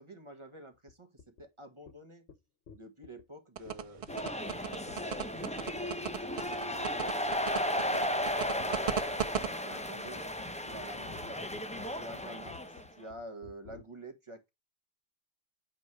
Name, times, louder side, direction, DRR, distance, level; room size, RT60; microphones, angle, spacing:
voice 1, 0.0-2.2 2.7-7.2 7.5-8.0 8.6-11.5 11.9-14.5, right 1 dB, 30° right, 1.3 m, -49 dB
sound 1, 0.9-1.0 1.2-1.4 1.9-2.0 2.3-2.4 2.7-3.2 3.7-3.8 4.1-4.2 4.5-4.6 4.9-5.4 5.8-6.0 6.3-6.5 6.8-7.0 7.3-7.5 7.8-13.8, left 5 dB, 85° left, 1.3 m, -53 dB
sound 2, 3.6-9.5, right 8 dB, 60° right, 0.3 m, -35 dB
sound 3, 4.1-12.8, left 1 dB, 10° left, 0.6 m, -35 dB
8.4 x 3.2 x 4.6 m
omnidirectional pair, 1.1 m